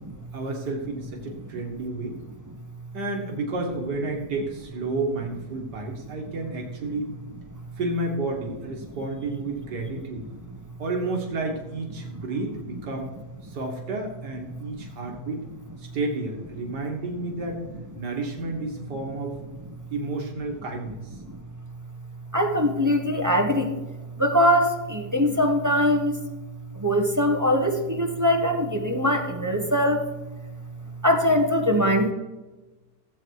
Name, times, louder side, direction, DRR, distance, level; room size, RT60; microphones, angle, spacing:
voice 1, 0.3-2.2 2.9-7.1 7.8-10.3 10.8-13.1 13.4-15.5 15.8-17.6 17.9-19.4 19.9-21.2, right 2 dB, 85° right, 1 dB, 2.2 m, -31 dB
voice 2, 22.3-23.7 24.2-26.2 26.7-30.0 31.0-32.1, equal, 15° right, 3 dB, 1.0 m, -22 dB
16.0 x 8.0 x 4.7 m, 1.1 s
omnidirectional pair, 1.7 m